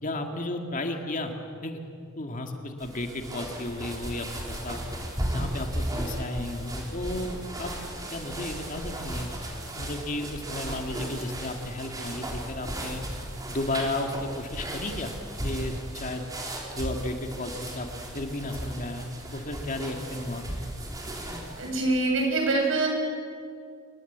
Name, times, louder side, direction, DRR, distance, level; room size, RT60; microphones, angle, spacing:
voice 1, 0.0-1.3 1.6-1.8 2.2-4.8 5.3-7.7 8.1-9.3 9.8-13.0 13.5-15.2 15.4-16.3 16.7-17.9 18.1-20.5, left 2 dB, 40° left, 3 dB, 2.4 m, -33 dB
sound 1, 2.8-21.8, right 1 dB, 20° right, 3.9 m, -36 dB
voice 2, 21.6-22.9, right 2 dB, 65° right, 1 dB, 7.5 m, -24 dB
28.0 x 21.5 x 8.2 m, 2.3 s
head